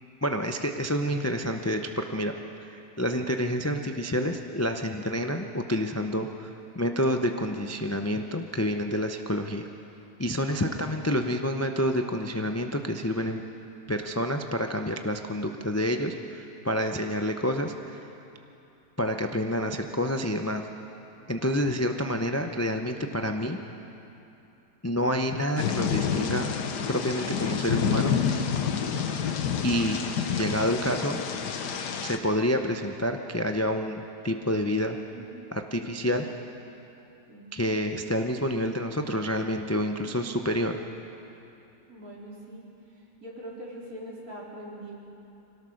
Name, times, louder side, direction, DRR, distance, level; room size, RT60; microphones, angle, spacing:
voice 1, 0.2-2.3 2.7-6.5 6.7-9.6 10.2-13.4 13.9-17.7 19.0-20.6 21.3-23.6 24.8-26.5 26.9-28.2 29.6-30.0 30.4-31.2 32.0-35.0 35.7-36.2 37.5-40.8, equal, 20° left, 5 dB, 0.4 m, -28 dB
voice 2, 10.6-11.1 35.1-35.2 35.7-35.9 37.3-37.6 41.9-44.9, right 1 dB, 60° right, -5 dB, 4.3 m, -43 dB
Thunder / Rain, 25.6-32.2, left 7 dB, 85° left, 1.7 m, -28 dB
24.5 x 18.0 x 6.5 m, 2.8 s
omnidirectional pair, 1.7 m